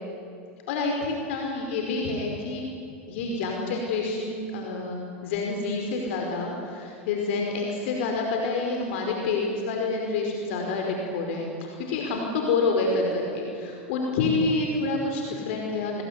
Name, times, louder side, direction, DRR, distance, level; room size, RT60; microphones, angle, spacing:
voice 1, 0.7-2.7 3.1-16.0, left 3 dB, 65° left, 1 dB, 5.3 m, -28 dB
28.0 x 21.5 x 9.8 m, 2.5 s
hypercardioid pair, 100°, 7 cm